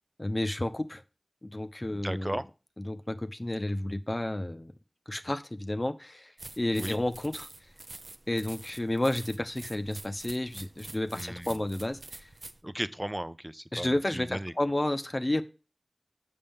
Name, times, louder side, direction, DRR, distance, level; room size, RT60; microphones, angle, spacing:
voice 1, 0.2-1.0 1.4-2.4 2.8-4.7 5.1-7.5 8.3-12.3 13.7-15.4, left 1 dB, 40° left, 9 dB, 0.7 m, -31 dB
voice 2, 1.9-2.4 6.8-7.0 11.1-11.6 12.6-14.5, right 1 dB, 15° right, 15 dB, 0.5 m, -36 dB
sound 1, 6.4-12.6, right 2 dB, 85° right, 0.7 m, -46 dB
7.2 x 6.6 x 3.5 m, 0.32 s
wide cardioid pair, 45°, 0 cm